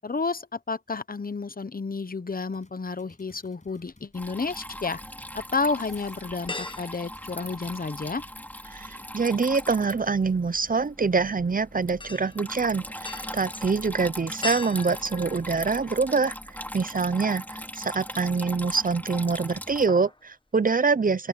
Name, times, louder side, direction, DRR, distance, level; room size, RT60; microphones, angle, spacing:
voice 1, 0.0-5.0 5.5-8.2, left 4 dB, 80° left, 0.8 m, -31 dB
sound 1, 2.5-8.4, left 2 dB, 55° left, 5.9 m, -58 dB
sound 2, 3.8-4.8 5.3-5.4 6.5-8.2 8.5-16.4 16.8-16.9 18.4-18.9 19.2-19.4 19.7-20.2 20.6-20.7, left 3 dB, 35° left, 1.4 m, -41 dB
Water tap faucet / Trickle dribble, 4.1-19.9, equal, 10° left, 3.4 m, -40 dB
voice 2, 8.7-21.3, right 4 dB, 70° right, 0.6 m, -25 dB
open air
wide cardioid pair, 45°, 15 cm